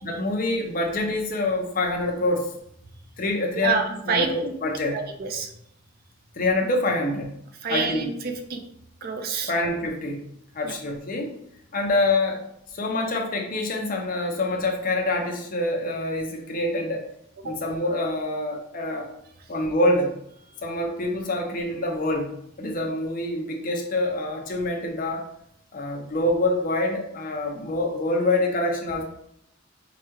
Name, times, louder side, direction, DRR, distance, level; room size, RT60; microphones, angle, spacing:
voice 1, 0.0-2.5 3.2-3.8 4.1-5.0 6.4-7.3 7.7-8.1 9.5-10.2 10.5-11.3 11.7-12.4 12.7-17.0 17.4-19.1 19.5-20.1 20.6-25.3 25.7-29.0, left 2 dB, 45° left, 2 dB, 0.6 m, -26 dB
voice 2, 3.6-4.5 4.9-5.5 7.6-8.6 9.0-9.5 10.6-10.7 17.4-17.6, right 5 dB, 45° right, 5 dB, 0.4 m, -27 dB
4.7 x 2.3 x 3.0 m, 0.73 s
head